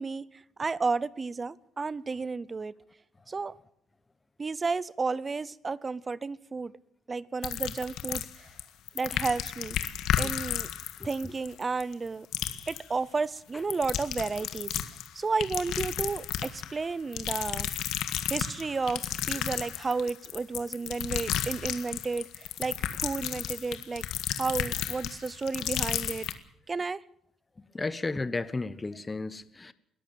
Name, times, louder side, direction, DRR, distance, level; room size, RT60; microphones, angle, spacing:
voice 1, 0.0-2.7 3.3-3.5 4.4-6.7 7.1-8.5 8.9-9.8 10.2-10.7 11.0-12.3 12.7-14.8 15.1-17.7 18.3-24.0 24.4-26.3 26.7-27.0, right 4 dB, 25° right, 0.7 m, -32 dB
sound 1, 7.4-8.6 8.9-12.1 12.3-12.8 13.6-15.1 15.4-16.7 17.1-26.3, left 11 dB, 80° left, 1.7 m, -33 dB
voice 2, 27.7-29.7, left 3 dB, 20° left, 1.1 m, -33 dB
22.0 x 13.5 x 8.9 m
cardioid pair, 110°, 0 cm